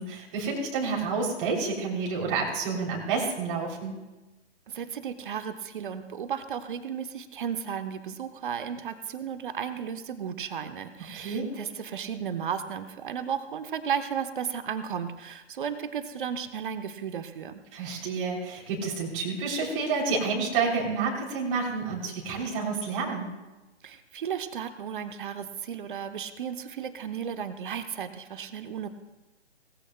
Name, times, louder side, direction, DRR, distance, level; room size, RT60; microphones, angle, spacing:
voice 1, 0.0-4.0 11.1-11.5 17.7-23.3, right 4 dB, 30° right, -3 dB, 3.2 m, -29 dB
voice 2, 4.7-17.6 23.8-28.9, right 7 dB, 45° right, 10 dB, 1.0 m, -34 dB
19.0 x 15.0 x 2.2 m, 1.1 s
figure-of-eight pair, 130°, 34 cm